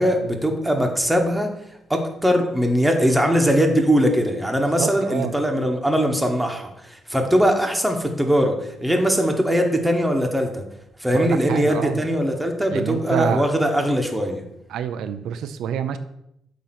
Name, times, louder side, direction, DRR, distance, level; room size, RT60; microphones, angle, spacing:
voice 1, 0.0-1.5 1.9-10.7 11.0-14.5, equal, 5° right, 3 dB, 1.1 m, -21 dB
voice 2, 4.8-5.3 11.1-12.0 12.7-13.5 14.7-16.0, right 8 dB, 80° right, 10 dB, 0.4 m, -26 dB
8.4 x 2.8 x 5.9 m, 0.79 s
cardioid pair, 90°, 0 cm